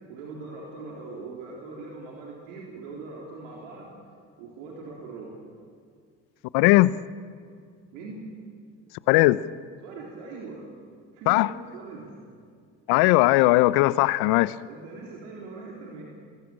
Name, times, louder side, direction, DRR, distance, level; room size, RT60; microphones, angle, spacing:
voice 1, 0.1-3.9 4.4-5.4 7.9-8.3 9.8-10.7 11.1-12.2 14.6-16.0, right 3 dB, 80° right, 3.9 m, -41 dB
voice 2, 6.5-6.9 9.1-9.4 11.3-11.5 12.9-14.5, left 19 dB, 75° left, 0.8 m, -18 dB
26.0 x 20.5 x 9.0 m
hypercardioid pair, 60°, 37 cm